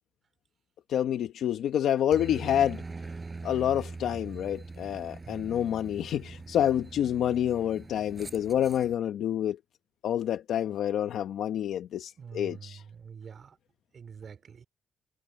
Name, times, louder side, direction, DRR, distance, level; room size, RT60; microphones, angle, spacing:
voice 1, 0.9-2.8 3.4-9.6 10.0-12.8, left 10 dB, 75° left, 1.2 m, -28 dB
Aircraft, 2.1-8.9, right 3 dB, 25° right, 5.4 m, -42 dB
voice 2, 12.2-13.5 13.9-14.7, right 6 dB, 50° right, 3.0 m, -45 dB
cardioid pair, 90°, 0 cm